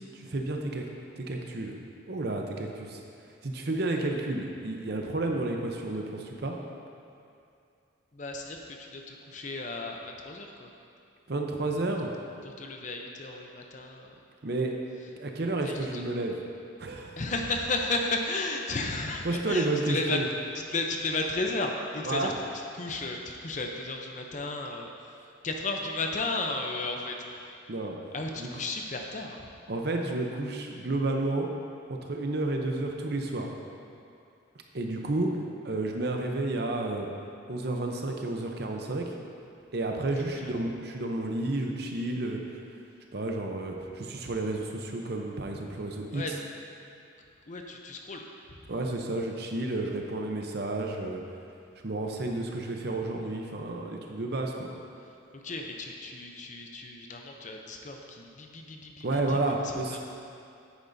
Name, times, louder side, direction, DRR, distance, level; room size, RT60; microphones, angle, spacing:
voice 1, 0.1-0.9 1.2-1.8 2.1-3.0 3.4-6.5 11.3-12.1 14.4-14.7 15.2-16.4 16.8-17.2 19.2-20.2 22.0-22.3 27.7-28.0 28.4-28.5 29.7-31.5 31.9-33.5 34.7-35.3 35.6-37.1 37.5-39.2 39.7-42.4 43.1-46.2 48.7-51.2 51.8-54.7 59.0-60.0, right 2 dB, 50° right, 2 dB, 0.7 m, -31 dB
voice 2, 8.1-10.7 12.4-14.2 15.6-16.0 17.2-20.2 20.5-22.3 22.7-27.6 28.1-29.5 40.4-40.5 46.1-46.3 47.5-48.7 55.0-60.0, left 2 dB, 40° left, 2 dB, 0.6 m, -34 dB
9.9 x 8.4 x 2.7 m, 2.5 s
head